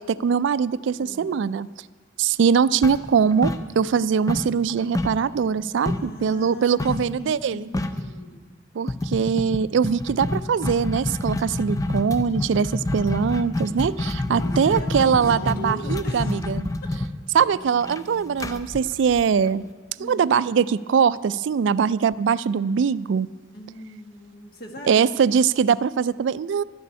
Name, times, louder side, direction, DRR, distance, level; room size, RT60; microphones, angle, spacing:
voice 1, 0.0-1.7 2.2-7.7 8.7-16.7 17.3-19.6 20.0-23.3 24.9-26.6, right 6 dB, 70° right, 18 dB, 0.3 m, -22 dB
voice 2, 1.0-1.3 5.8-8.4 10.0-10.4 14.3-16.4 16.8-16.9 20.0-20.4 23.5-25.0, left 1 dB, 50° left, 3 dB, 1.4 m, -40 dB
sound 1, 2.8-4.0 4.3-6.2 6.8-7.1 7.4-7.5 7.7-8.1 8.9-19.7, left 2 dB, 15° left, 0.5 m, -27 dB
12.0 x 6.8 x 9.7 m, 1.4 s
head